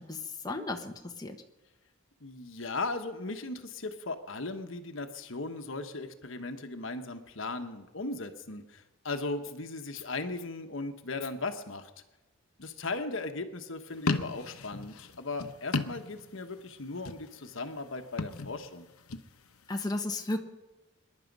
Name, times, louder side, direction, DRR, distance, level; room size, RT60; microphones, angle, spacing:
voice 1, 0.0-1.4 19.7-20.4, left 2 dB, 20° left, 3 dB, 1.1 m, -34 dB
voice 2, 2.2-11.9 12.6-18.9, left 3 dB, 65° left, 7 dB, 1.2 m, -37 dB
sound 1, 13.9-16.6 16.9-17.5 18.0-19.3, left 3 dB, 90° left, 0.9 m, -34 dB
25.0 x 11.0 x 5.4 m, 1.1 s
head